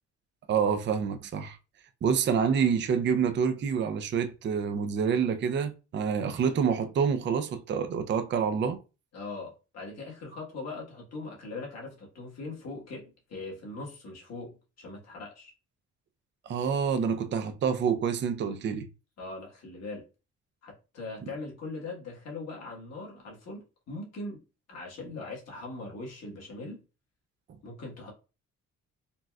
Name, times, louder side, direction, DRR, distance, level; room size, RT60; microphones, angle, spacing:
voice 1, 0.5-1.6 2.0-8.8 16.5-18.9 27.5-27.6, right 6 dB, 40° right, 0.4 m, -27 dB
voice 2, 9.1-15.5 19.2-20.0 20.6-24.4 24.7-26.8 27.6-28.1, left 3 dB, 55° left, 1.5 m, -41 dB
3.9 x 2.3 x 2.3 m
cardioid pair, 90°, 30 cm